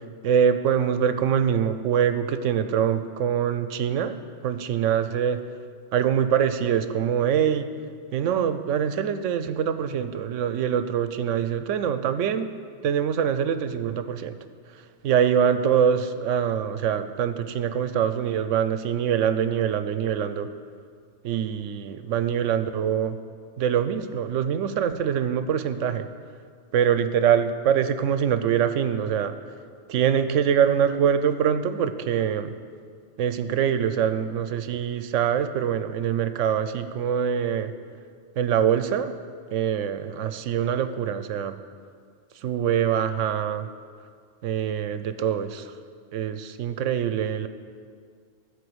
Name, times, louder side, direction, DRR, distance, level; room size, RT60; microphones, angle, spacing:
voice 1, 0.2-4.1 4.4-5.4 5.9-7.7 8.1-12.5 12.8-14.4 15.0-20.5 21.2-23.2 23.6-26.1 26.7-29.3 29.9-32.5 33.2-37.7 38.4-39.1 39.5-41.6 42.4-43.7 44.4-45.7 46.1-47.5, right 8 dB, 90° right, 11 dB, 1.0 m, -24 dB
14.0 x 5.0 x 7.9 m, 2.1 s
omnidirectional pair, 1.2 m